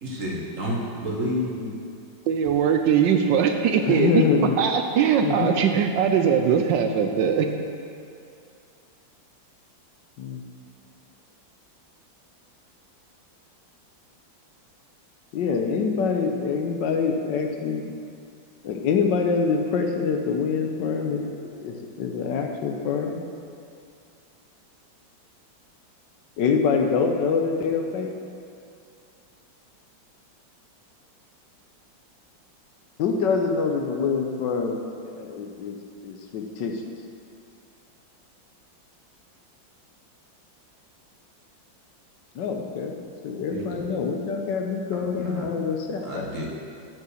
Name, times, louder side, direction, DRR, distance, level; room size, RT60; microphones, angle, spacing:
voice 1, 0.0-1.6 43.5-43.9 44.9-45.5 46.0-46.5, equal, 45° right, -2 dB, 1.4 m, -30 dB
voice 2, 2.3-4.2 4.6-7.5, right 7 dB, 75° right, 5 dB, 1.2 m, -21 dB
voice 3, 3.8-4.6 5.2-5.5 10.2-10.4 15.3-17.9 18.6-23.2 26.4-28.1 33.0-34.8 35.1-35.8 36.0-36.8 42.3-42.9 43.2-46.3, left 5 dB, 70° left, 3 dB, 1.3 m, -25 dB
9.2 x 5.4 x 6.3 m, 2.4 s
omnidirectional pair, 2.1 m